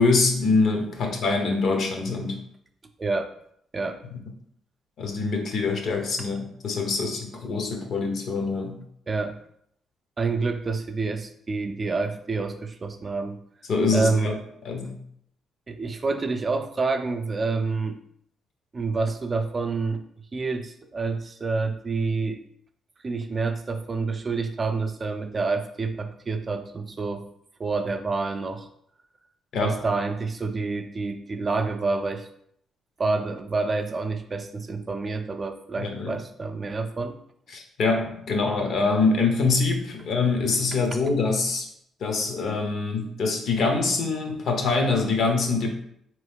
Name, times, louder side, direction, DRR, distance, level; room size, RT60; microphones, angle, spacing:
voice 1, 0.0-2.4 4.1-4.2 5.0-8.7 13.7-14.3 14.6-15.0 29.5-29.8 35.8-36.1 37.5-41.7 42.0-45.7, left 3 dB, 65° left, 3 dB, 0.8 m, -24 dB
voice 2, 3.0-3.3 3.7-4.0 9.1-9.4 10.2-13.4 13.9-14.4 15.7-18.0 18.7-20.0 20.3-22.4 23.0-27.3 27.6-28.7 29.6-32.3 33.0-37.2, right 3 dB, 35° right, 6 dB, 0.4 m, -28 dB
3.7 x 3.0 x 3.5 m, 0.69 s
cardioid pair, 90°, 0 cm